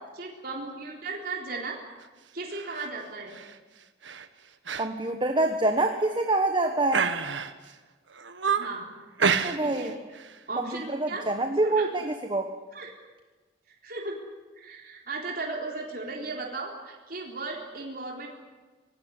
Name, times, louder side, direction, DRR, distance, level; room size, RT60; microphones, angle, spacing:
voice 1, 0.1-1.8 2.3-3.4 8.6-8.9 9.6-10.0 10.5-11.3 11.6-11.9 12.7-12.9 13.8-14.2 14.6-18.3, right 3 dB, 55° right, -1 dB, 3.9 m, -36 dB
sound 1, 2.5-2.9 3.3-3.6 4.0-4.3 4.7-4.9 5.2-5.3 5.9-6.4 6.9-7.7 8.1-8.8 9.2-9.9 10.1-10.4, right 6 dB, 90° right, 1.6 m, -29 dB
voice 2, 4.8-7.1 9.4-9.9 10.7-12.5, right 2 dB, 25° right, 5 dB, 1.4 m, -26 dB
25.0 x 19.5 x 9.7 m, 1.3 s
head